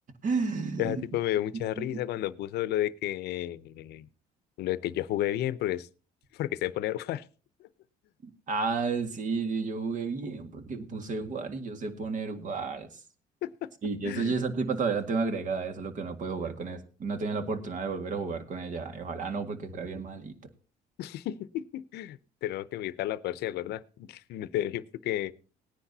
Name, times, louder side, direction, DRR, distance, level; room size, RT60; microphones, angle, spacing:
voice 1, 0.2-1.0 1.8-2.0 8.2-12.9 13.8-20.3, right 4 dB, 50° right, 1.9 m, -32 dB
voice 2, 0.8-4.1 4.6-5.9 6.3-7.2 13.4-13.7 14.0-14.3 21.0-25.3, left 13 dB, 75° left, 0.7 m, -32 dB
19.0 x 10.0 x 2.8 m
cardioid pair, 110°, 17 cm